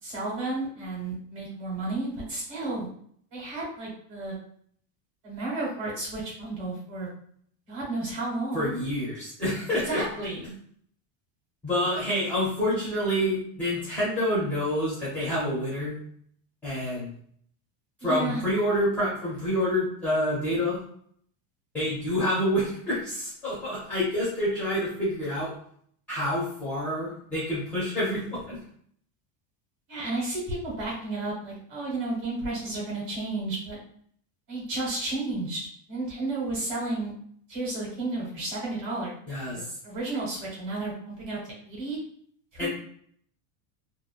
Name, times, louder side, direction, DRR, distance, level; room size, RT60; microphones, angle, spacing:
voice 1, 0.0-2.9 3.3-4.4 5.2-7.1 7.7-8.7 9.8-10.5 18.0-18.4 29.9-33.8 34.5-35.6 35.9-37.1 37.5-39.1 39.5-42.0 42.5-42.7, right 2 dB, 40° right, -4 dB, 1.4 m, -32 dB
voice 2, 8.5-10.0 11.6-16.0 16.6-17.1 18.0-20.8 21.7-25.5 26.1-28.6 39.3-39.7 42.6-42.7, equal, 5° left, -9 dB, 0.5 m, -27 dB
2.9 x 2.5 x 2.4 m, 0.62 s
cardioid pair, 180°, 48 cm